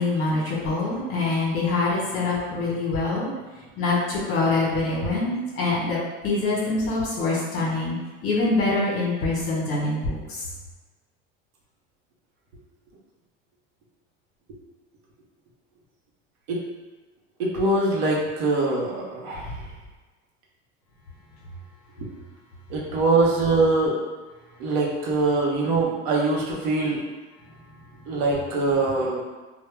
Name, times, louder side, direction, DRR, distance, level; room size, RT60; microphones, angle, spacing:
voice 1, 0.0-3.3 3.8-10.4, left 3 dB, 50° left, -5 dB, 1.0 m, -25 dB
voice 2, 17.4-19.5 22.0-22.1 22.7-24.0 24.6-27.0 28.1-29.2, right 2 dB, 70° right, -3 dB, 0.8 m, -23 dB
2.1 x 2.1 x 3.2 m, 1.3 s
supercardioid pair, 120°, 30 cm